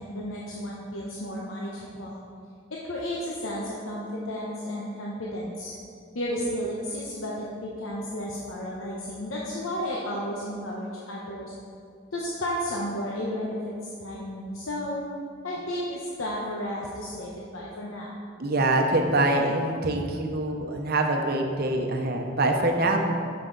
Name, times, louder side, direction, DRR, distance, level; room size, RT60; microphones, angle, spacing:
voice 1, 0.0-2.2 2.8-5.7 6.1-11.5 12.1-13.7 14.0-15.0 15.4-18.1, equal, 90° left, -4 dB, 0.9 m, -33 dB
voice 2, 18.4-23.0, right 2 dB, 50° right, 3 dB, 0.8 m, -24 dB
8.0 x 6.9 x 3.9 m, 2.3 s
head